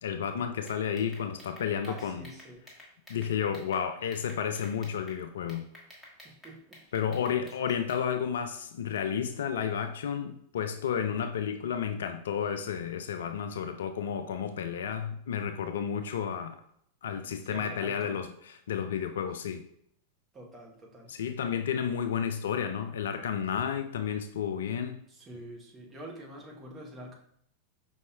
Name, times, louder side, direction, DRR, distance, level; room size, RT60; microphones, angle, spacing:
voice 1, 0.0-2.3 3.1-5.7 6.9-16.6 17.0-19.6 21.1-25.0, left 8 dB, 60° left, 9 dB, 0.3 m, -32 dB
sound 1, 0.7-3.8 4.1-5.2 5.5-8.0, left 1 dB, 10° left, 1.4 m, -51 dB
voice 2, 1.8-2.6 6.2-6.8 17.4-18.2 20.3-21.1 25.1-27.1, right 1 dB, 20° right, -1 dB, 1.0 m, -46 dB
5.2 x 4.1 x 2.3 m, 0.68 s
figure-of-eight pair, 90°, 0 cm